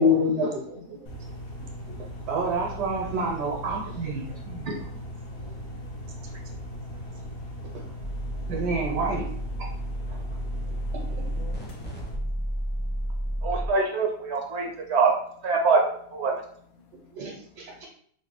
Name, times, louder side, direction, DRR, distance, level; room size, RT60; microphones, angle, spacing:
voice 1, 0.0-1.0 2.0-2.1 13.4-15.1 15.4-15.8 16.1-16.4, right 1 dB, 60° right, 0 dB, 0.7 m, -23 dB
voice 2, 0.9-2.2 5.2-8.5 10.1-13.5 14.8-14.9 16.8-17.9, left 6 dB, 80° left, 1 dB, 1.2 m, -55 dB
sound 1, 1.1-12.2, equal, 60° left, 1.1 m, -39 dB
voice 3, 2.3-4.7 7.7-7.8 8.5-9.2 17.1-17.9, right 4 dB, 85° right, -2 dB, 1.4 m, -30 dB
sound 2, 8.0-13.7, equal, 10° left, 0.4 m, -32 dB
3.7 x 2.1 x 3.8 m, 0.62 s
omnidirectional pair, 1.8 m